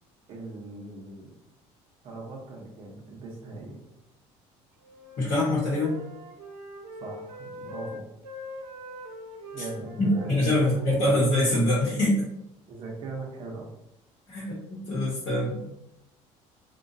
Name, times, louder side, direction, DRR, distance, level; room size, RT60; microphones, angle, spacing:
voice 1, 0.3-1.3 2.0-3.8 7.0-8.0 9.5-10.7 11.0-11.1 12.7-13.7, right 3 dB, 40° right, -1 dB, 0.7 m, -39 dB
Wind instrument woodwind instrument, 4.8-11.6, left 1 dB, 75° right, 0.6 m, -44 dB
voice 2, 5.2-6.0 9.6-9.7 10.0-12.3 14.3-15.7, left 1 dB, 45° left, -5 dB, 0.9 m, -24 dB
2.8 x 2.2 x 2.6 m, 0.83 s
cardioid pair, 155°, 13 cm